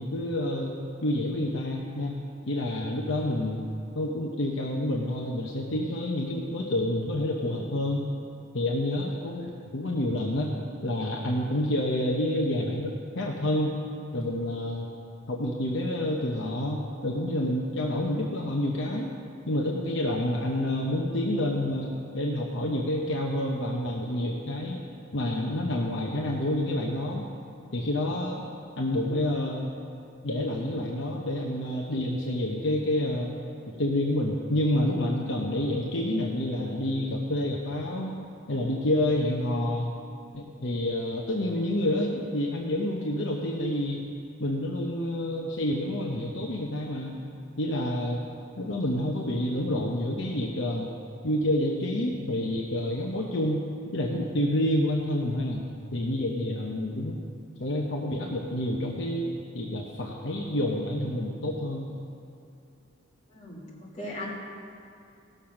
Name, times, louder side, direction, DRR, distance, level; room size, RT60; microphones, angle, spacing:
voice 1, 0.0-3.7 3.9-8.1 8.5-10.5 10.8-13.7 14.1-14.9 15.3-19.1 19.5-24.8 25.1-27.2 27.7-28.4 28.8-29.7 30.2-38.2 38.5-39.9 40.3-44.0 44.4-47.2 47.6-48.3 48.6-50.9 51.2-53.6 53.9-55.6 55.9-57.2 57.6-61.8, left 1 dB, 65° left, -1 dB, 0.9 m, -28 dB
voice 2, 63.3-64.3, left 1 dB, 35° left, -5 dB, 2.6 m, -39 dB
16.5 x 6.9 x 5.9 m, 2.5 s
head